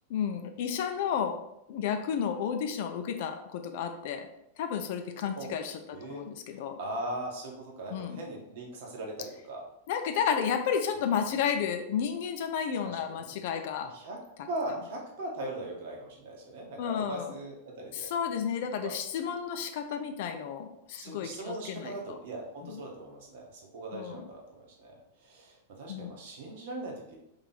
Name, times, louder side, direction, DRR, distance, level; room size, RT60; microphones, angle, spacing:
voice 1, 0.1-1.4 1.7-4.3 4.6-6.8 7.9-8.2 9.9-13.9 16.8-17.4 17.9-22.0 22.6-22.7 23.9-24.2 25.9-26.1, left 7 dB, 50° left, 7 dB, 0.4 m, -32 dB
voice 2, 5.9-6.2 6.8-9.6 12.8-13.4 13.8-14.2 14.5-18.1 18.8-18.9 21.0-27.2, right 1 dB, 50° right, 0 dB, 0.9 m, -39 dB
3.2 x 2.7 x 3.9 m, 0.81 s
figure-of-eight pair, 95°, 0 cm